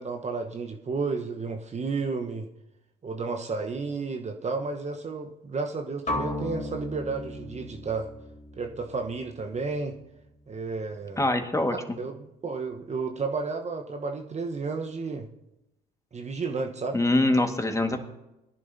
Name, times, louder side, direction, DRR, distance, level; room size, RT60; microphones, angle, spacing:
voice 1, 0.0-2.5 3.0-8.1 8.6-10.0 10.5-11.2 11.7-15.3 16.1-17.0, right 4 dB, 35° right, 4 dB, 1.1 m, -32 dB
sound 1, 6.1-10.0, left 1 dB, 35° left, 3.6 m, -36 dB
voice 2, 11.2-12.0 16.9-18.0, left 2 dB, 15° left, 5 dB, 1.8 m, -24 dB
20.5 x 10.5 x 2.8 m, 0.92 s
hypercardioid pair, 55°, 20 cm